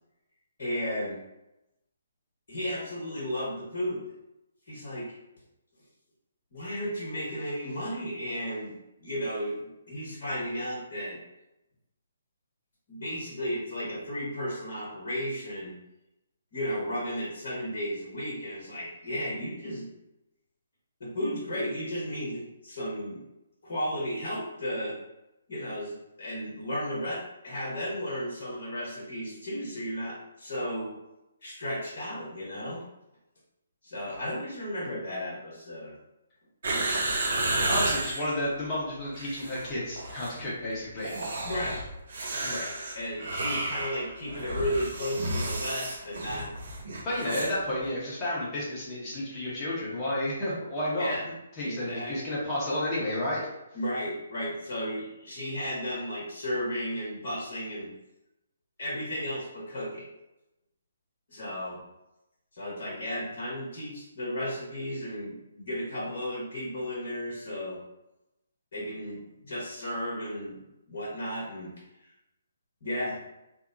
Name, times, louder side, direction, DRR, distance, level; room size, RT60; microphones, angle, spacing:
voice 1, 0.6-1.2 2.5-4.0 4.7-5.1 6.5-9.5 9.9-11.2 12.9-15.7 16.5-19.9 21.0-23.2 23.6-25.0 25.5-30.9 31.4-32.8 33.8-36.0 41.4-41.8 42.5-46.5 51.0-51.3 51.6-52.1 53.7-57.9 58.8-60.1 61.3-61.8 62.5-67.8 68.7-70.6 70.9-71.7 72.8-73.2, equal, 55° left, -6 dB, 1.2 m, -34 dB
sound 1, 36.6-38.3 39.0-39.7 40.0-40.4 41.0-47.6 47.8-47.9, right 2 dB, 60° right, 0.6 m, -32 dB
voice 2, 37.7-41.1 42.4-42.6 47.0-51.1 51.6-53.5, left 1 dB, 25° left, -7 dB, 1.0 m, -31 dB
2.7 x 2.1 x 2.6 m, 0.91 s
figure-of-eight pair, 140°, 0 cm